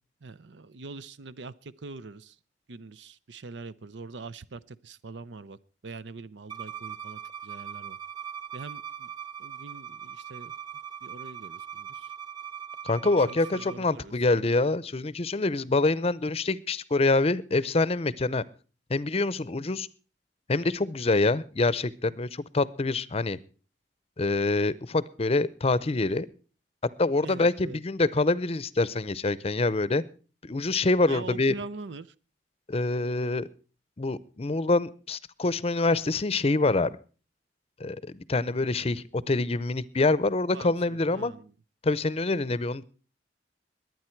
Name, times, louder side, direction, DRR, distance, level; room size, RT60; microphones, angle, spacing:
voice 1, 0.2-2.4 2.7-8.0 8.5-9.1 9.4-10.5 11.0-12.1 13.0-14.1 27.2-27.8 31.0-32.1 40.5-41.5, right 3 dB, 90° right, 17 dB, 0.7 m, -43 dB
Bowed string instrument, 6.5-13.8, right 8 dB, 25° right, 1.0 m, -40 dB
voice 2, 12.8-18.4 18.9-19.9 20.5-23.4 24.2-26.3 27.0-30.0 30.4-31.5 32.7-33.5 34.0-37.0 37.8-41.3 41.8-42.8, left 3 dB, 35° left, 19 dB, 0.6 m, -26 dB
21.5 x 9.3 x 4.5 m, 0.37 s
head